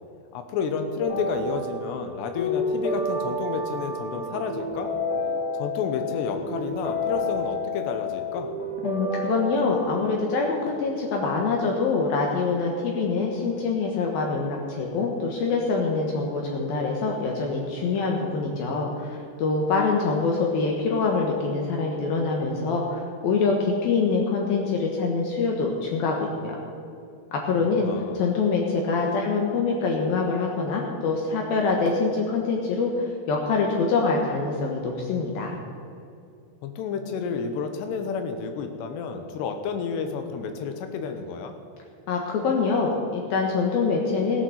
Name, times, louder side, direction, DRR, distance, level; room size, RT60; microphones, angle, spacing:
voice 1, 0.3-4.9 5.5-8.5 27.8-28.2 36.6-41.5, left 5 dB, 90° left, 6 dB, 3.2 m, -30 dB
sound 1, 1.0-10.1, left 2 dB, 30° left, 2.3 m, -30 dB
voice 2, 8.8-26.6 27.3-27.9 28.1-35.6 42.1-44.4, left 4 dB, 70° left, 0 dB, 2.9 m, -25 dB
16.5 x 8.9 x 7.9 m, 2.5 s
omnidirectional pair, 4.8 m